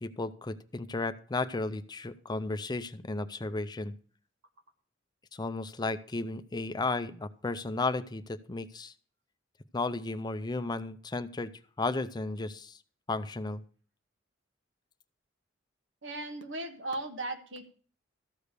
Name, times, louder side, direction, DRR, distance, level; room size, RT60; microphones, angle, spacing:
voice 1, 0.0-3.9 5.3-8.9 9.7-11.5 11.8-12.8 13.1-13.6, left 3 dB, 20° left, 11 dB, 0.5 m, -34 dB
voice 2, 16.0-17.7, right 2 dB, 80° right, 5 dB, 1.6 m, -37 dB
13.5 x 5.0 x 6.6 m, 0.42 s
head